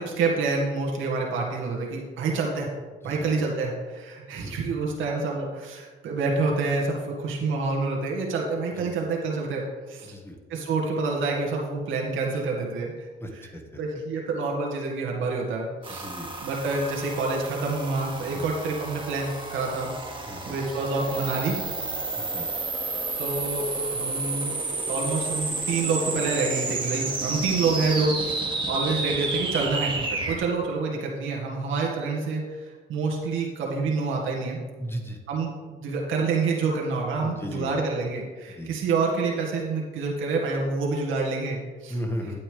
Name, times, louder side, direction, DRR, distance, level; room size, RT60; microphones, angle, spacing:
voice 1, 0.0-2.7 3.0-9.6 9.9-10.2 10.5-13.1 13.3-13.4 13.8-16.1 16.4-21.6 23.2-24.5 24.9-34.6 35.3-42.0, right 3 dB, 85° right, -2 dB, 1.9 m, -27 dB
voice 2, 10.0-10.4 13.2-13.8 15.9-16.3 18.3-18.4 20.3-20.6 22.3-22.5 34.8-35.2 37.2-37.7 38.5-38.7 41.9-42.4, equal, 10° left, 3 dB, 1.6 m, -35 dB
sound 1, 15.8-30.4, right 3 dB, 25° right, 2.1 m, -31 dB
10.0 x 9.0 x 3.4 m, 1.4 s
cardioid pair, 90°, 20 cm